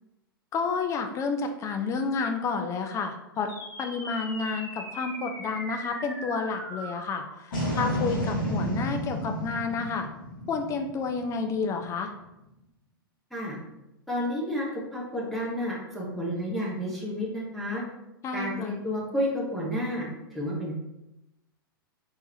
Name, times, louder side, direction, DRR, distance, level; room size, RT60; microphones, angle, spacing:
voice 1, 0.5-3.5 3.8-10.1 10.5-12.1 18.2-18.7, left 4 dB, 25° left, 5 dB, 0.6 m, -30 dB
sound 1, 3.5-12.1, equal, 60° left, 1.5 m, -34 dB
voice 2, 14.1-17.8 18.3-20.0 20.3-20.8, equal, ahead, -6 dB, 1.1 m, -31 dB
4.6 x 3.6 x 2.9 m, 0.90 s
figure-of-eight pair, 100°, 12 cm